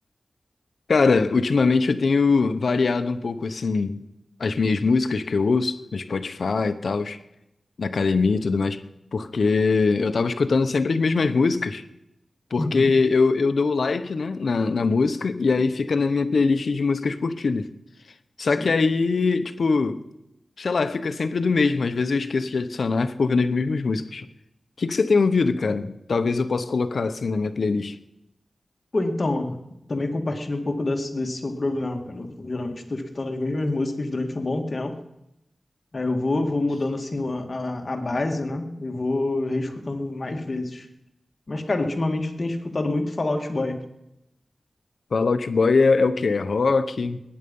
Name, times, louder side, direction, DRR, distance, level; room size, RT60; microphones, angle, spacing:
voice 1, 0.9-4.0 4.4-7.2 7.8-8.8 9.1-11.8 12.5-17.7 18.4-20.0 20.6-24.3 24.8-28.0 45.1-47.2, left 4 dB, 75° left, 0.9 m, -22 dB
voice 2, 12.6-12.9 18.6-18.7 28.9-29.6 29.9-35.0 35.9-40.9 41.5-43.8, left 2 dB, 45° left, 2.0 m, -27 dB
20.0 x 10.0 x 5.5 m
wide cardioid pair, 85°, 0 cm